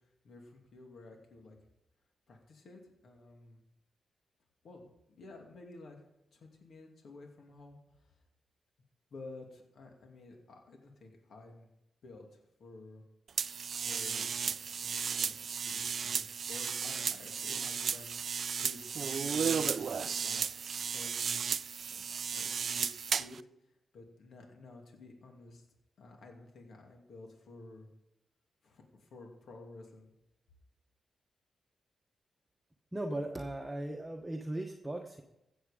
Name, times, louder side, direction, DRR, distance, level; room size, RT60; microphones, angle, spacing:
voice 1, 0.0-1.6 2.3-3.6 4.6-6.0 6.3-7.8 8.0-8.1 9.1-11.7 12.0-13.0 13.8-15.4 15.6-20.4 20.9-21.5 21.9-22.0 22.3-22.9 23.2-23.4 23.9-25.6 26.0-27.9 28.6-30.1, left 2 dB, 75° left, 2 dB, 2.5 m, -52 dB
sound 1, 13.4-23.4, right 6 dB, 60° right, 0.3 m, -34 dB
voice 2, 32.9-35.2, right 1 dB, 15° right, 2 dB, 1.1 m, -38 dB
15.5 x 7.9 x 5.1 m, 0.87 s
cardioid pair, 95°, 0 cm